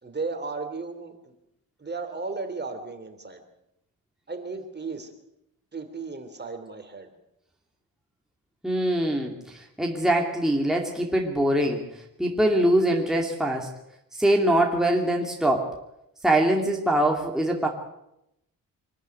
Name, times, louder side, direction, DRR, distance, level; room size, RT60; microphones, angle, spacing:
voice 1, 0.0-1.3 1.8-3.4 4.3-5.1 5.7-7.1, right 4 dB, 30° right, 6 dB, 3.2 m, -35 dB
voice 2, 8.6-11.9 12.2-13.7 14.2-15.7 16.2-17.7, right 1 dB, ahead, 0 dB, 2.5 m, -23 dB
25.0 x 13.5 x 9.4 m, 0.83 s
wide cardioid pair, 130°, 36 cm